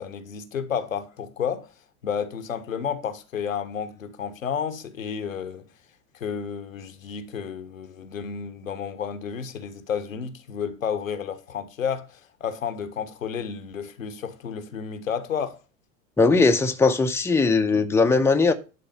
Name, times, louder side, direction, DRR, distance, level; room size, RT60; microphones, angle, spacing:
voice 1, 0.0-1.7 2.0-5.7 6.2-15.6, left 7 dB, 75° left, 1.1 m, -31 dB
voice 2, 16.2-18.5, left 4 dB, 5° left, 0.8 m, -19 dB
11.0 x 4.1 x 5.5 m
figure-of-eight pair, 75°, 40 cm